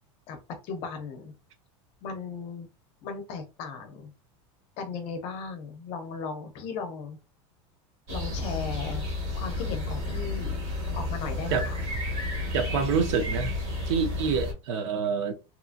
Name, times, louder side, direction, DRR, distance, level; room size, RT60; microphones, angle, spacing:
voice 1, 0.6-1.3 2.0-2.7 3.0-4.1 4.8-7.2 8.1-9.0 9.3-10.6 10.9-11.8, left 5 dB, 40° left, 0.6 m, -36 dB
sound 1, 8.1-14.5, left 2 dB, 55° right, 1.3 m, -31 dB
voice 2, 12.5-13.5 13.9-15.3, right 6 dB, 70° right, 0.6 m, -27 dB
2.8 x 2.6 x 2.4 m
supercardioid pair, 170°, 16 cm